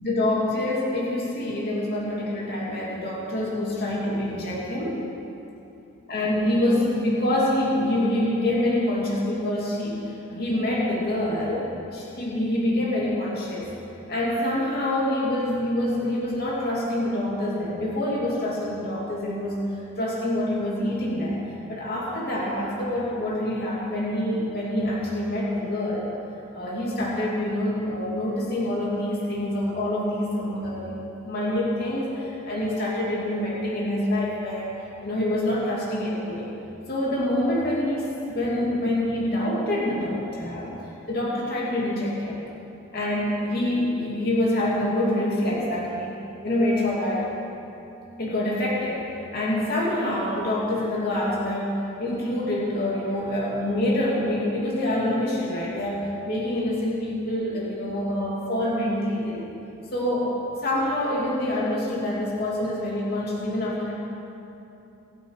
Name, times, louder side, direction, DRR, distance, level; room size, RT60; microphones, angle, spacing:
voice 1, 0.0-5.0 6.1-13.7 14.1-19.6 20.0-21.4 21.7-26.1 26.5-31.0 31.2-36.5 36.9-40.7 41.1-42.4 42.9-47.3 48.2-49.1 49.3-59.4 59.9-63.9, left 1 dB, 50° left, -5 dB, 2.7 m, -26 dB
24.5 x 8.2 x 4.8 m, 2.9 s
head